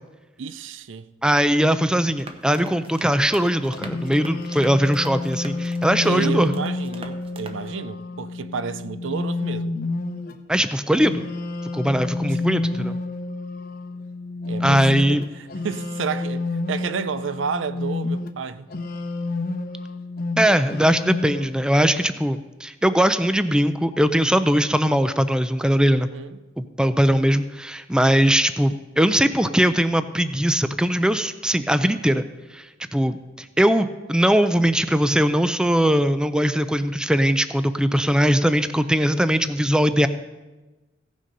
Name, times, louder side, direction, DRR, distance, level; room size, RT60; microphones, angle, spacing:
voice 1, 0.4-1.1 6.0-9.7 12.3-12.4 14.5-18.7 25.9-26.4 28.1-28.3, right 6 dB, 85° right, 0.5 m, -31 dB
voice 2, 1.2-6.5 10.5-11.3 11.7-12.9 14.6-15.2 20.4-26.1 26.6-32.2 32.5-32.7 32.9-40.1, equal, 5° right, 0.4 m, -20 dB
sound 1, 2.2-7.7, right 2 dB, 30° right, 0.9 m, -42 dB
sound 2, 3.7-10.3 10.9-18.3 18.7-21.5, left 3 dB, 50° left, 0.9 m, -29 dB
16.0 x 6.4 x 5.4 m
head